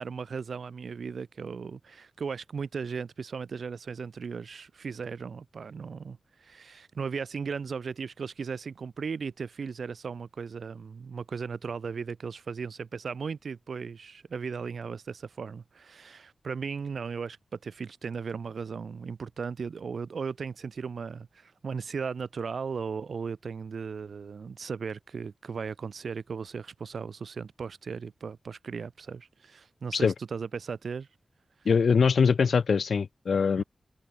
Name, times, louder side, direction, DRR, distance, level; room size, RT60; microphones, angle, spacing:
voice 1, 0.0-17.4 17.6-31.1 33.6-33.7, right 5 dB, 75° right, 3.1 m, -36 dB
voice 2, 31.6-33.6, left 5 dB, 80° left, 0.7 m, -23 dB
wide cardioid pair, 115°, 0 cm